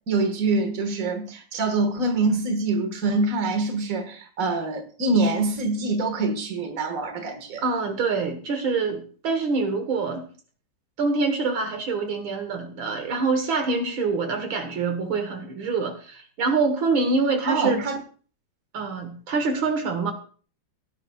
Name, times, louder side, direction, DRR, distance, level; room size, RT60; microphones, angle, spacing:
voice 1, 0.1-7.6 17.5-18.0, right 3 dB, 40° right, 1.9 m, -25 dB
voice 2, 7.6-10.3 11.0-17.8 18.7-20.1, right 4 dB, 70° right, 2.1 m, -25 dB
17.0 x 9.9 x 2.4 m
omnidirectional pair, 2.3 m